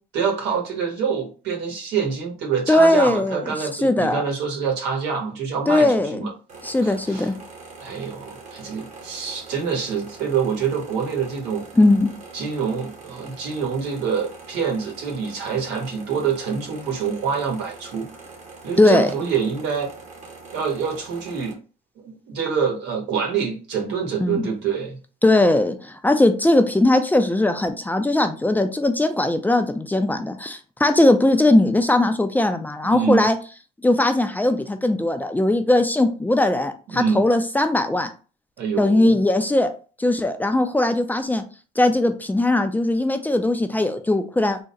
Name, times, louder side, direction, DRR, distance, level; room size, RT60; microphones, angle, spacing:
voice 1, 0.1-6.3 6.8-7.3 7.8-11.6 12.3-18.1 18.6-19.9 20.5-21.6 22.0-25.0 32.8-33.2 36.9-37.3 38.6-39.2, right 6 dB, 90° right, 1.3 m, -26 dB
voice 2, 2.7-4.2 5.7-6.3 6.6-7.3 11.8-12.1 18.8-19.1 24.2-24.4 25.2-33.4 33.8-38.1 38.8-39.7 40.0-41.4 41.8-44.6, left 1 dB, 10° left, 0.5 m, -19 dB
sound 1, 6.5-21.5, right 3 dB, 45° right, 1.2 m, -43 dB
3.7 x 2.1 x 4.0 m
cardioid pair, 110°, 17 cm